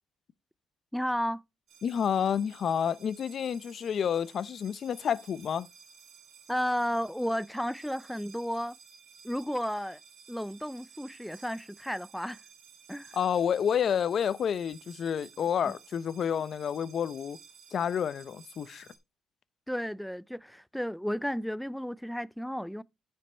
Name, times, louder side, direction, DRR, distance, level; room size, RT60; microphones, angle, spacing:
voice 1, 0.9-1.4 6.5-8.8 9.2-10.0 10.3-12.4 12.9-13.2 15.7-15.8 19.7-22.8, equal, ahead, 0.4 m, -33 dB
sound 1, 1.7-19.0, right 7 dB, 70° right, 1.9 m, -55 dB
voice 2, 1.8-5.7 13.1-17.4 17.7-18.9, left 8 dB, 60° left, 0.6 m, -29 dB
9.8 x 5.3 x 4.2 m
cardioid pair, 90°, 0 cm